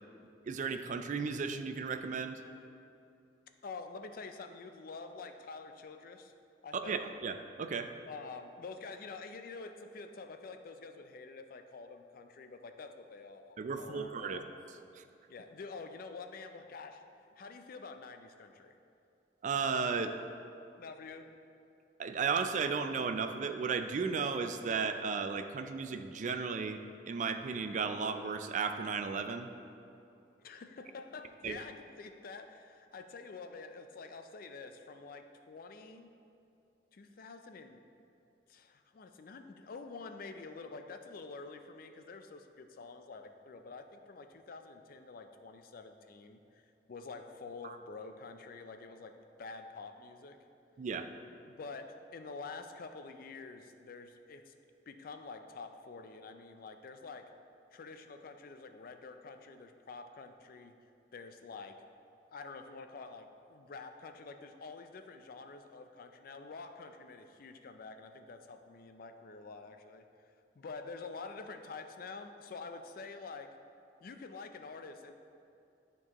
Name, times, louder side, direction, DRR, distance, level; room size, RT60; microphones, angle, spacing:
voice 1, 0.5-2.4 6.9-7.9 13.6-14.4 14.9-15.0 19.4-20.1 22.0-26.8 27.1-29.5 31.4-31.6 47.6-47.8 50.8-51.1, right 5 dB, 45° right, 8 dB, 0.3 m, -34 dB
voice 2, 3.6-6.3 6.6-7.0 8.1-14.4 15.3-17.0 17.4-18.8 20.8-21.3 30.4-36.1 36.9-37.8 38.5-46.6 46.9-49.1 49.4-50.4 51.5-54.5 54.9-57.3 57.7-60.7 61.1-61.8 62.3-70.0 70.6-73.6 74.0-75.1, left 4 dB, 55° left, 7 dB, 0.4 m, -47 dB
10.5 x 4.5 x 2.9 m, 2.7 s
head